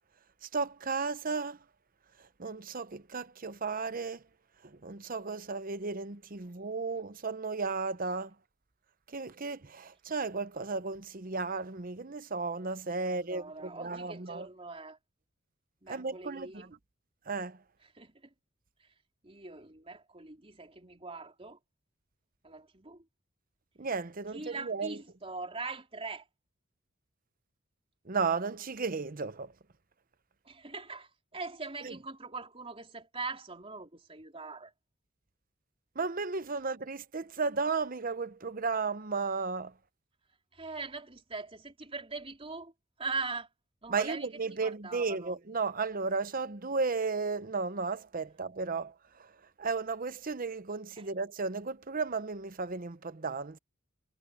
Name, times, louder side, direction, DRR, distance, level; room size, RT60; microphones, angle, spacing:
voice 1, 0.4-1.6 2.4-4.2 4.6-8.3 9.1-14.5 15.9-16.7 17.3-17.6 23.8-25.0 28.1-29.5 31.8-31.9 36.0-39.7 43.9-48.9 49.2-49.3 49.6-53.6, right 4 dB, 45° right, 0.9 m, -34 dB
voice 2, 13.1-15.0 15.8-16.7 17.8-18.3 18.8-19.0 19.2-21.6 22.4-23.1 24.3-26.3 30.4-34.7 40.5-43.5 43.8-44.3 44.6-45.4 51.0-51.1, right 3 dB, 30° right, 3.8 m, -42 dB
head